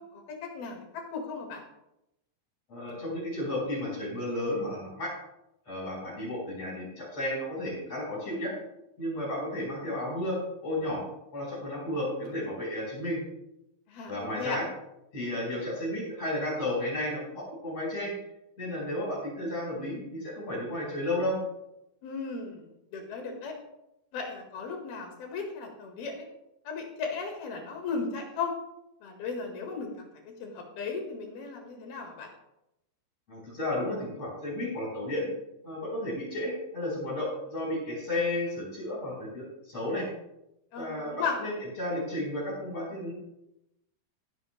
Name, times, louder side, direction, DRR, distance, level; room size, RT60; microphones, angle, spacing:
voice 1, 0.5-0.9 1.1-1.6 13.9-14.1 14.4-14.6 22.0-23.5 24.1-26.3 26.7-28.5 29.0-29.9 30.4-32.3 40.7-41.4, left 5 dB, 70° left, 2 dB, 3.5 m, -36 dB
voice 2, 2.7-5.1 5.7-8.5 9.0-11.0 11.3-13.2 14.1-14.7 15.1-18.1 18.6-21.4 33.3-35.3 35.6-40.1 40.8-41.5 41.8-43.1, left 1 dB, 40° left, -4 dB, 5.3 m, -33 dB
19.5 x 11.0 x 2.2 m, 0.87 s
omnidirectional pair, 4.7 m